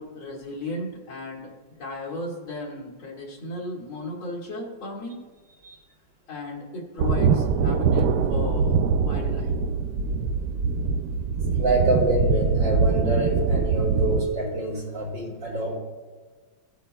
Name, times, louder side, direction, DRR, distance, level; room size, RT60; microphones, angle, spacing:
voice 1, 0.0-5.2 6.3-9.5, left 2 dB, 75° left, -6 dB, 2.7 m, -35 dB
sound 1, 7.0-14.3, right 5 dB, 85° right, 0.8 m, -23 dB
voice 2, 11.6-15.8, right 2 dB, 60° right, -4 dB, 3.6 m, -26 dB
18.5 x 8.4 x 2.3 m, 1.4 s
omnidirectional pair, 2.2 m